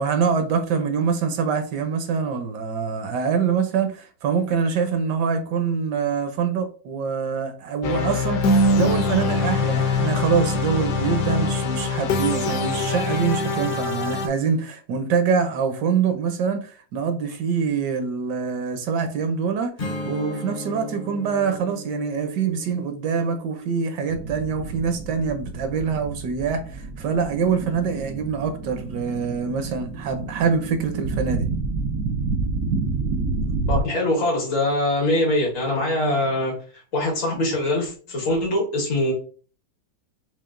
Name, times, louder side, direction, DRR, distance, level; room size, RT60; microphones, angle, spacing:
voice 1, 0.0-19.7 20.0-31.5, right 6 dB, 70° right, 1.2 m, -25 dB
sound 1, 7.8-14.3, left 2 dB, 70° left, 1.1 m, -23 dB
Strum, 19.8-25.1, left 2 dB, 50° left, 0.5 m, -37 dB
sound 2, 24.1-33.8, right 3 dB, 90° right, 0.7 m, -29 dB
voice 2, 33.7-36.6 36.9-39.1, left 1 dB, 85° left, 2.2 m, -23 dB
5.7 x 2.4 x 2.4 m
omnidirectional pair, 2.0 m